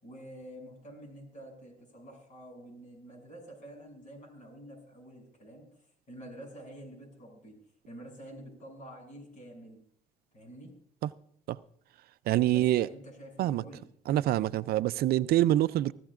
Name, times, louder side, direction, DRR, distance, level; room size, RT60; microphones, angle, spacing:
voice 1, 0.0-5.6 6.1-7.6 7.9-9.8 10.3-10.7 12.5-13.9, right 1 dB, 50° left, 6.8 m, -48 dB
voice 2, 12.3-12.9 13.4-13.6 14.1-15.9, right 14 dB, 65° right, 0.4 m, -25 dB
24.0 x 14.0 x 2.5 m
cardioid pair, 110°, 17 cm